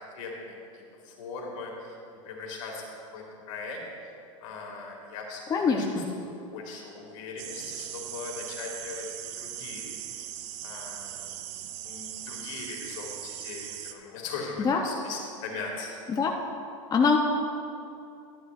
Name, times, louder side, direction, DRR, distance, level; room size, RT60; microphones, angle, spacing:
voice 1, 0.1-2.0 2.2-4.1 4.4-5.4 5.8-5.9 6.2-9.1 9.4-10.0 10.6-11.5 11.8-15.9, left 4 dB, 70° left, 0 dB, 2.4 m, -40 dB
voice 2, 5.5-6.0 14.6-14.8 16.1-16.3 16.9-17.2, left 5 dB, 20° left, 1 dB, 0.8 m, -23 dB
sound 1, 7.4-13.9, right 11 dB, 60° right, 0.7 m, -39 dB
13.5 x 10.5 x 2.6 m, 2.6 s
hypercardioid pair, 105°, 17 cm